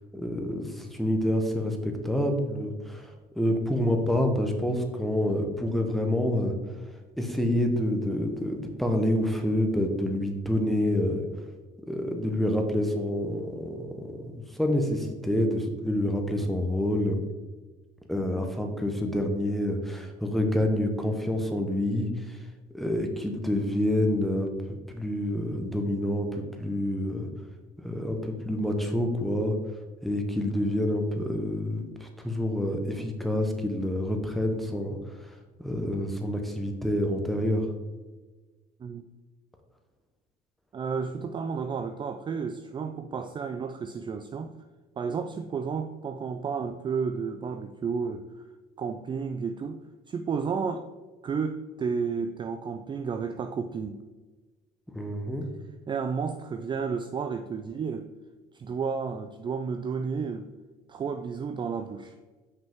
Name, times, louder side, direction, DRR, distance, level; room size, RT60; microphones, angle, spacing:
voice 1, 0.1-6.5 7.2-11.2 11.9-17.2 18.1-22.4 22.7-24.5 24.9-27.3 27.8-29.5 30.0-35.0 35.6-37.7 54.9-55.5, left 1 dB, ahead, 4 dB, 0.9 m, -27 dB
voice 2, 40.7-44.5 45.0-48.3 48.8-49.8 50.1-50.9 51.2-54.0 55.9-58.1 58.5-60.5 60.9-62.1, right 5 dB, 30° right, 7 dB, 0.3 m, -32 dB
5.9 x 5.3 x 3.6 m, 1.3 s
cardioid pair, 110°, 17 cm